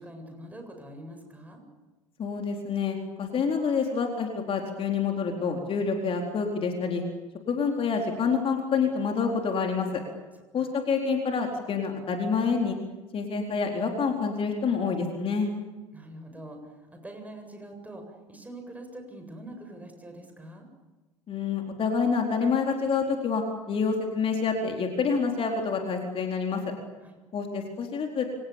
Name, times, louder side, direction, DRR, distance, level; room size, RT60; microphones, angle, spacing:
voice 1, 0.0-1.6 10.6-10.7 15.9-20.7 27.0-27.2, right 1 dB, 10° right, 4 dB, 7.8 m, -44 dB
voice 2, 2.2-7.0 7.5-9.9 10.5-12.8 13.1-15.5 21.3-26.6 27.3-28.3, left 5 dB, 35° left, 2 dB, 4.3 m, -27 dB
29.0 x 26.5 x 7.3 m, 1.2 s
figure-of-eight pair, 65°, 16 cm